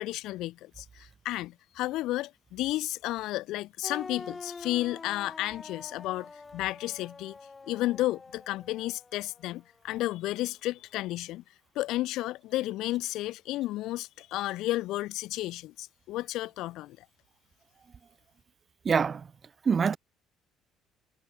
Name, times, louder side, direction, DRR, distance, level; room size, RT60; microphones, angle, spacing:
voice 1, 0.0-7.3 7.7-11.4 11.8-17.0, left 16 dB, 75° left, 0.4 m, -32 dB
sound 1, 3.8-9.5, left 4 dB, 20° left, 3.0 m, -45 dB
voice 2, 18.8-19.3 19.7-20.0, right 6 dB, 35° right, 0.6 m, -24 dB
cardioid pair, 105°, 0 cm